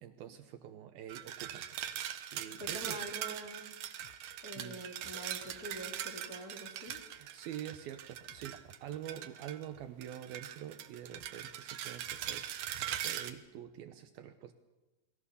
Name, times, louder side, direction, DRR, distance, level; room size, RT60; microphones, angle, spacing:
voice 1, 0.0-1.8 2.3-3.0 4.6-4.9 7.2-12.7 13.0-14.5, right 10 dB, 90° right, 9 dB, 2.1 m, -46 dB
sound 1, 1.1-9.7 10.0-13.3, right 11 dB, 70° right, 2.2 m, -41 dB
sound 2, 2.6-2.8 4.0-4.2 5.5-5.6 6.9-7.1 8.3-8.5 9.7-9.9 11.1-11.3, left 9 dB, 85° left, 4.4 m, -61 dB
voice 2, 2.6-3.7 4.4-7.0, right 1 dB, 25° left, 2 dB, 2.6 m, -45 dB
29.5 x 21.5 x 7.0 m, 1.1 s
omnidirectional pair, 5.8 m